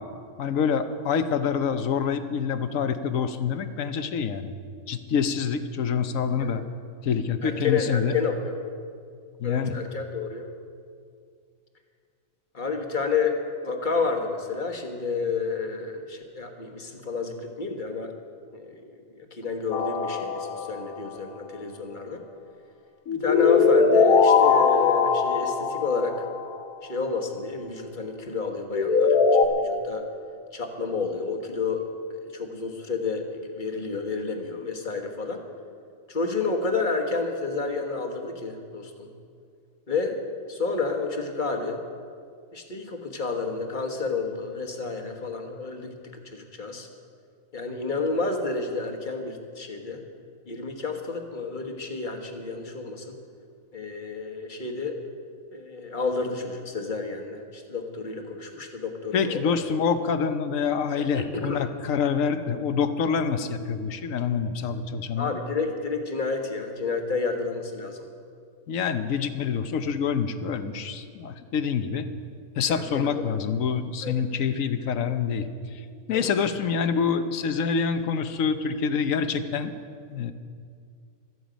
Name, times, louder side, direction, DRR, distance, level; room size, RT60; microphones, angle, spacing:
voice 1, 0.4-4.5 4.9-6.6 7.0-8.1 9.4-9.7 59.1-65.3 68.7-72.1 72.6-75.5 76.1-79.7 80.1-80.3, left 6 dB, 70° left, 10 dB, 1.1 m, -26 dB
voice 2, 7.4-8.5 9.4-10.5 12.5-18.1 18.5-22.2 23.2-26.2 26.8-30.1 30.5-31.8 32.1-35.4 36.1-39.1 39.9-40.2 40.5-41.8 42.5-46.9 47.5-50.0 50.5-53.1 53.7-55.0 55.5-59.6 61.0-61.6 65.2-68.1 72.7-72.8 73.1-73.2 74.0-74.1 76.1-76.3, left 4 dB, 35° left, 4 dB, 1.4 m, -30 dB
sound 1, 19.7-20.8 23.1-26.4 28.7-29.5, left 5 dB, 90° left, 1.4 m, -20 dB
16.0 x 13.0 x 5.1 m, 2.2 s
omnidirectional pair, 1.5 m